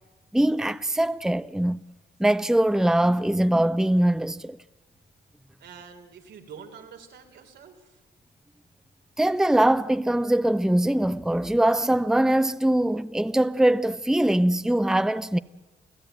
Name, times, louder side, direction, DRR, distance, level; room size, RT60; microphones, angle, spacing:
voice 1, 0.3-1.8 2.2-4.6 9.2-15.4, right 1 dB, 5° right, 0.7 m, -22 dB
voice 2, 5.6-8.0, right 6 dB, 85° right, 3.7 m, -46 dB
29.5 x 16.0 x 9.1 m
cardioid pair, 65°, 18 cm